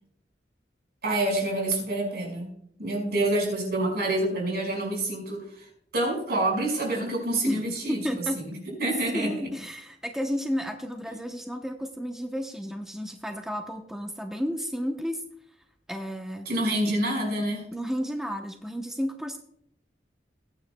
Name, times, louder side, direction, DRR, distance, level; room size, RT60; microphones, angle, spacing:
voice 1, 1.0-2.5 2.8-9.5 16.4-17.6, right 1 dB, 60° right, 0 dB, 5.2 m, -27 dB
voice 2, 7.4-8.5 8.8-15.2 15.9-16.5 17.7-19.4, equal, 5° right, 3 dB, 0.8 m, -32 dB
21.5 x 9.5 x 2.2 m, 0.71 s
head